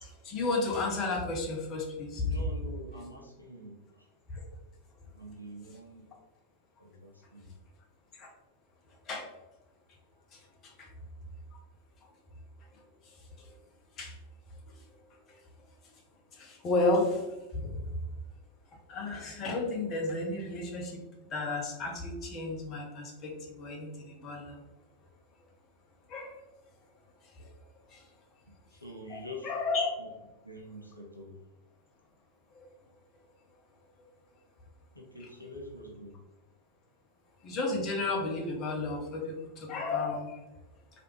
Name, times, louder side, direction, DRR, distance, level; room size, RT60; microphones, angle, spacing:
voice 1, 0.0-2.2 8.2-8.3 9.1-9.2 10.8-10.9 14.0-14.1 16.4-17.2 17.5-17.7 18.9-21.0 21.3-23.9 24.2-24.6 26.1-26.4 29.1-29.9 37.4-40.3, left 2 dB, 35° left, 0 dB, 0.8 m, -32 dB
voice 2, 2.2-4.1 5.1-6.1 6.8-7.6 10.1-10.2 28.5-29.5 30.0-30.1 30.4-31.4 34.9-36.2, left 1 dB, 85° left, -1 dB, 0.5 m, -46 dB
3.1 x 2.4 x 3.1 m, 1.0 s
figure-of-eight pair, 90°, 0 cm